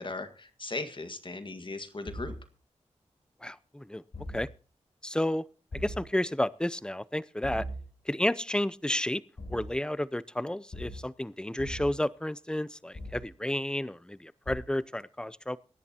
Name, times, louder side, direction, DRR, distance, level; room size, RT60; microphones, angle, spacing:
voice 1, 0.0-2.3, left 3 dB, 45° left, 8 dB, 1.8 m, -38 dB
sound 1, 2.1-2.3 4.1-4.4 5.7-6.0 7.4-7.8 9.4-9.7 10.7-11.0 11.6-11.9 12.9-13.2 14.5-14.6, equal, 60° left, 7.9 m, -39 dB
voice 2, 3.4-4.0 4.3-4.5 5.0-5.4 5.8-7.7 8.1-9.2 9.5-15.6, left 1 dB, 5° left, 19 dB, 0.6 m, -31 dB
24.5 x 11.0 x 2.9 m, 0.37 s
cardioid pair, 45°, 12 cm